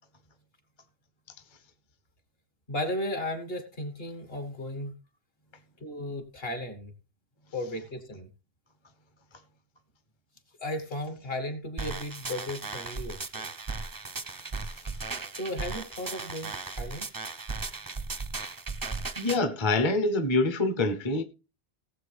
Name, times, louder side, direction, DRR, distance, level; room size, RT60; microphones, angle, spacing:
voice 1, 2.7-4.9 5.8-6.9 7.5-8.3 10.6-13.4 15.4-17.1, left 1 dB, 60° left, 2.1 m, -35 dB
sound 1, 11.8-19.4, right 4 dB, 25° right, 0.5 m, -36 dB
voice 2, 19.2-21.2, left 2 dB, 30° left, 0.8 m, -25 dB
18.0 x 7.5 x 3.4 m
omnidirectional pair, 1.1 m